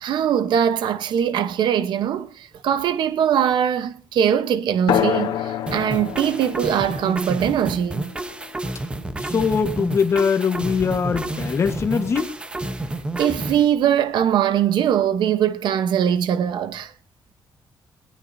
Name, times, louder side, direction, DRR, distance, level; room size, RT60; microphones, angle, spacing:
voice 1, 0.0-8.1 13.2-16.9, right 9 dB, 75° right, 0.9 m, -21 dB
sound 1, 4.9-9.9, left 10 dB, 85° left, 1.5 m, -28 dB
sound 2, 5.7-13.6, right 2 dB, 15° right, 0.9 m, -30 dB
voice 2, 9.3-12.3, left 6 dB, 35° left, 1.3 m, -21 dB
19.5 x 18.0 x 2.7 m
wide cardioid pair, 175°, 8 cm